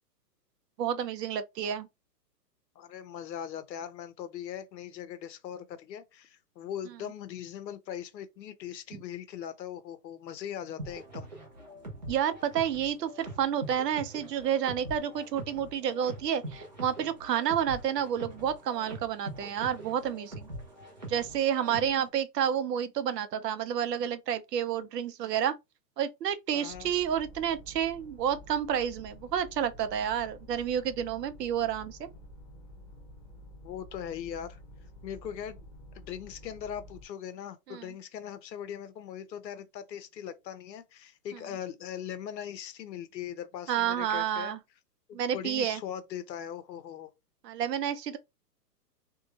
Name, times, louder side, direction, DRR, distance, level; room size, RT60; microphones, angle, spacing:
voice 1, 0.8-1.9 8.9-9.0 12.1-20.5 21.1-25.5 26.0-32.1 37.7-37.9 43.7-44.6 45.1-45.8 47.4-48.2, right 9 dB, 75° right, 0.7 m, -30 dB
voice 2, 2.8-11.3 26.5-26.9 33.6-34.6 35.0-35.7 35.9-44.6 45.1-47.1, left 9 dB, 90° left, 0.8 m, -40 dB
sound 1, 10.8-22.1, right 1 dB, 30° right, 0.5 m, -44 dB
sound 2, 26.7-37.0, left 1 dB, 30° left, 0.7 m, -50 dB
2.7 x 2.2 x 2.7 m
hypercardioid pair, 175°, 49 cm